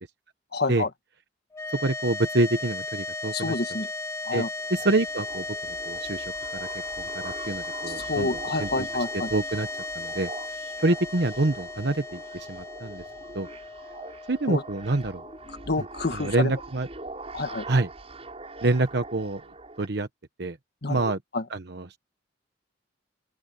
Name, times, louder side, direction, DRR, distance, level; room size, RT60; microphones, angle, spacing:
voice 1, 0.5-0.9 3.3-3.9 4.2-4.5 7.9-9.3 14.5-14.6 15.5-16.5 17.3-17.6 20.8-21.0 21.3-21.4, left 3 dB, 55° left, 1.5 m, -28 dB
sound 1, 1.5-15.9, left 2 dB, 15° left, 2.1 m, -36 dB
voice 2, 1.7-3.5 4.3-4.4 4.7-6.7 7.2-8.3 8.6-8.9 9.3-9.7 9.9-10.3 10.8-13.0 13.3-13.5 14.3-15.2 16.1-16.9 17.7-17.9 18.6-19.4 19.8-20.1 20.4-20.6 20.9-21.2 21.5-22.0, right 2 dB, 60° right, 1.1 m, -26 dB
sound 2, 4.6-19.9, right 2 dB, 35° right, 5.6 m, -43 dB
open air
head